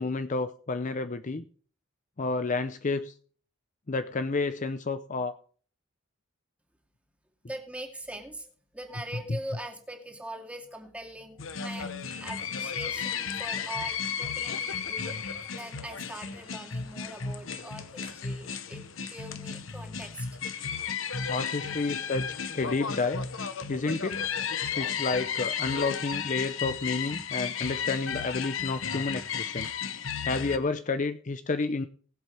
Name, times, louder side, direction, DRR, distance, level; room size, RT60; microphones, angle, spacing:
voice 1, 0.0-1.5 2.2-3.1 3.9-5.4 21.3-22.3 22.5-23.2 23.7-24.3 24.7-29.7 30.2-31.9, left 3 dB, 35° left, 11 dB, 0.6 m, -30 dB
voice 2, 7.5-11.9 12.2-20.3 21.3-21.4, right 1 dB, 5° right, 2 dB, 2.3 m, -42 dB
sound 1, 11.4-30.6, left 6 dB, 65° left, 1.0 m, -34 dB
21.0 x 7.9 x 3.3 m, 0.43 s
head